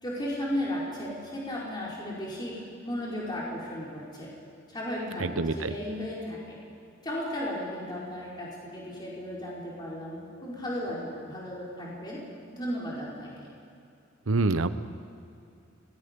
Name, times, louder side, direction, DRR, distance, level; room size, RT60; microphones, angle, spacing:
voice 1, 0.0-4.3 4.7-6.6 7.0-12.2 12.5-13.5, equal, 20° left, -6 dB, 4.6 m, -35 dB
voice 2, 5.2-5.7 14.3-14.7, right 3 dB, 90° right, 12 dB, 0.9 m, -26 dB
26.0 x 20.0 x 5.3 m, 2.5 s
head